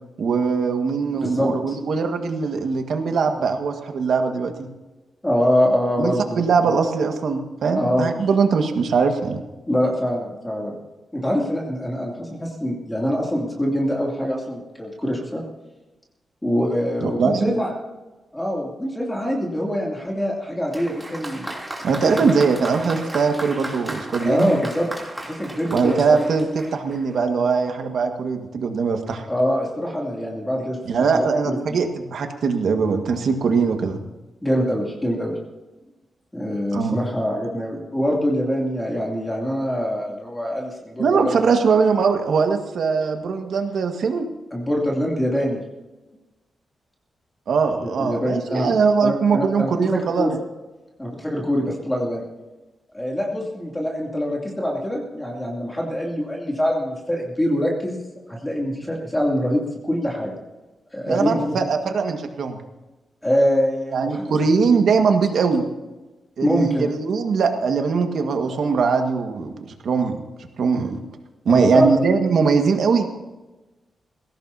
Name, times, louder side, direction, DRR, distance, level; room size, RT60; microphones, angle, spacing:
voice 1, 0.2-4.7 6.0-9.4 17.2-17.5 21.8-24.5 25.7-29.2 30.9-34.0 36.7-37.0 41.0-44.3 47.5-50.3 61.1-62.6 63.9-65.6 66.4-70.2 70.6-71.0 71.4-73.2, right 5 dB, 70° right, 5 dB, 1.7 m, -21 dB
voice 2, 1.1-1.8 5.2-6.7 7.7-8.1 9.7-10.8 11.1-15.4 16.4-17.7 18.3-21.5 22.0-22.1 24.2-24.9 25.2-26.2 29.3-30.8 31.1-31.6 34.4-35.3 36.3-41.6 44.5-45.6 47.8-48.7 49.0-49.7 50.2-50.4 51.0-52.3 52.9-58.0 58.3-60.3 60.9-61.6 63.2-64.2 64.8-64.9 66.4-66.9 71.5-72.0, equal, 10° left, -2 dB, 2.8 m, -24 dB
Applause, 20.7-27.2, right 1 dB, 10° right, 3.1 m, -35 dB
20.0 x 17.0 x 2.8 m, 1.1 s
wide cardioid pair, 145°, 0 cm